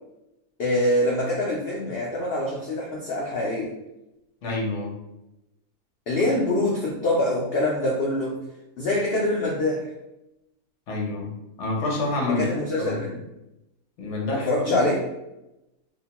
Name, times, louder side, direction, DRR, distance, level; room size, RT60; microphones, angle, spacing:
voice 1, 0.6-3.7 6.1-8.4 8.8-9.9 12.2-13.1 14.3-15.0, left 1 dB, 75° left, -3 dB, 0.5 m, -24 dB
voice 2, 4.4-4.9 10.9-11.3 11.6-12.5 12.8-13.2 14.0-14.8, left 2 dB, 60° left, -2 dB, 0.9 m, -28 dB
2.8 x 2.1 x 2.8 m, 0.92 s
omnidirectional pair, 1.6 m